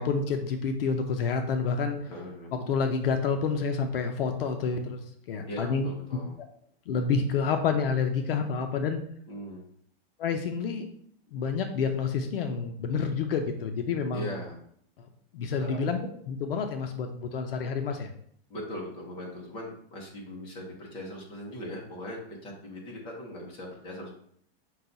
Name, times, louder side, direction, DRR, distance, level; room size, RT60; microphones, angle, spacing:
voice 1, 0.0-2.0 2.5-5.0 5.3-5.9 6.9-9.0 10.2-10.9 11.3-14.3 15.0-15.1 15.3-16.0 16.3-18.1, left 5 dB, 65° left, 5 dB, 0.6 m, -28 dB
voice 2, 2.1-2.5 5.5-6.3 9.3-9.7 14.1-14.6 15.4-15.8 18.5-24.1, equal, 15° left, -2 dB, 0.7 m, -40 dB
5.6 x 2.3 x 3.8 m, 0.65 s
supercardioid pair, 175°, 31 cm